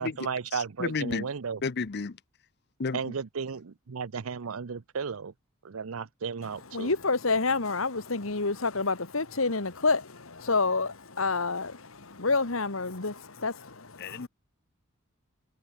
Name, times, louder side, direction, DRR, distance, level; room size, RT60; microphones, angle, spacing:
voice 1, 0.0-1.6 2.9-5.3 5.6-6.9, right 6 dB, 80° right, 0.6 m, -34 dB
voice 2, 0.5-1.3 1.6-2.2 2.8-3.1 14.0-14.3, left 4 dB, 50° left, 0.7 m, -32 dB
voice 3, 6.7-14.3, left 3 dB, 75° left, 1.9 m, -28 dB
head